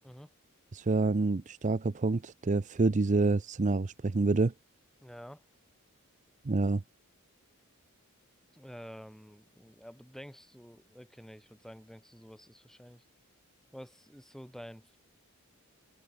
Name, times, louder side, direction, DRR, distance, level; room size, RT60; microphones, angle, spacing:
voice 1, 0.7-4.5 6.4-6.8, right 3 dB, 35° right, 0.5 m, -27 dB
voice 2, 5.0-5.4 8.5-13.0 13.7-15.0, equal, ahead, 3.3 m, -49 dB
open air
head